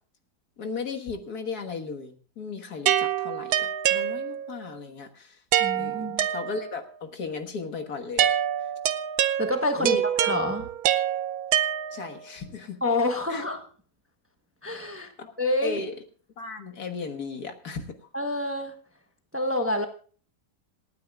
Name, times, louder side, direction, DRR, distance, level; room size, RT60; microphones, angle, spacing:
voice 1, 0.6-5.4 5.7-8.3 9.8-10.1 11.9-12.8 13.3-13.4 14.9-15.3 15.6-15.9 16.4-18.1, left 4 dB, 75° left, 5 dB, 2.0 m, -35 dB
sound 1, 2.9-4.6 5.5-6.9 8.2-12.3, right 10 dB, 75° right, 1.2 m, -26 dB
voice 2, 5.6-6.3 9.4-10.7 12.8-13.6 14.6-15.1 15.4-15.8 18.1-18.7 19.3-19.8, left 1 dB, 10° right, 5 dB, 1.0 m, -27 dB
27.0 x 9.5 x 2.3 m, 0.41 s
omnidirectional pair, 1.7 m